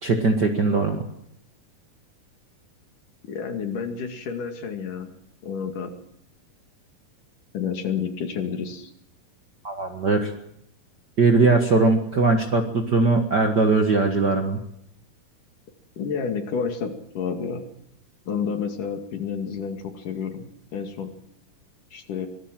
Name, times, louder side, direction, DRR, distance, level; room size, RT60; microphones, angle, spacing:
voice 1, 0.0-1.1 9.6-10.3 11.2-14.6, right 3 dB, 45° right, 4 dB, 1.6 m, -20 dB
voice 2, 3.2-5.1 5.4-5.9 7.5-8.9 16.0-17.7 18.3-21.1 21.9-22.3, left 6 dB, 70° left, 6 dB, 3.7 m, -30 dB
24.5 x 18.0 x 7.6 m, 0.77 s
omnidirectional pair, 3.9 m